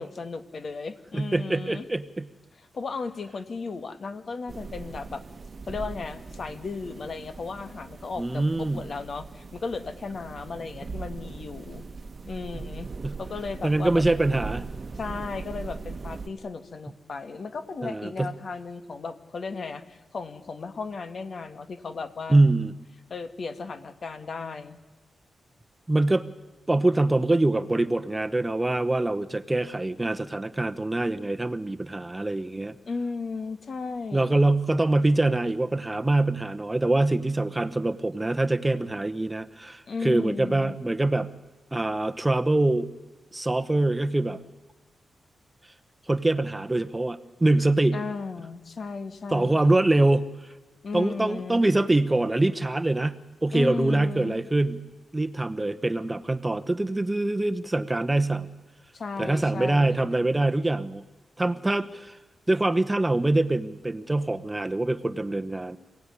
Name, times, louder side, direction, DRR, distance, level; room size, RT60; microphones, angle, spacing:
voice 1, 0.0-1.9 2.7-5.2 5.7-11.9 12.3-12.9 13.2-14.0 15.0-22.4 23.1-24.8 32.9-34.4 39.9-40.8 47.9-49.7 50.8-51.6 53.5-54.4 58.9-60.1, left 4 dB, 50° left, 9 dB, 2.0 m, -35 dB
voice 2, 1.1-2.3 8.2-8.8 13.0-13.1 13.6-14.6 17.8-18.3 22.3-22.7 25.9-26.3 26.7-32.7 34.1-41.3 41.7-42.9 43.3-44.4 46.1-48.0 49.3-50.5 50.9-53.2 53.4-54.8 55.1-58.5 59.2-61.0 61.4-62.2 62.5-65.8, right 2 dB, 15° right, 12 dB, 1.0 m, -24 dB
sound 1, 4.5-16.3, right 4 dB, 40° right, 1.2 m, -40 dB
27.5 x 18.0 x 10.0 m, 1.2 s
cardioid pair, 95°, 0 cm